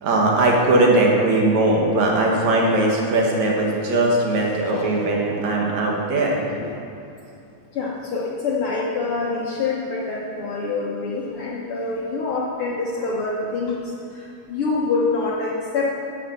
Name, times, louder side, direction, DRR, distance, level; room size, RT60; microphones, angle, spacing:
voice 1, 0.0-6.4, right 2 dB, 65° right, -1 dB, 2.6 m, -19 dB
voice 2, 4.6-5.3 6.6-6.7 7.7-13.8 14.1-16.1, left 3 dB, 65° left, -4 dB, 1.4 m, -26 dB
9.8 x 6.3 x 8.1 m, 2.5 s
omnidirectional pair, 3.6 m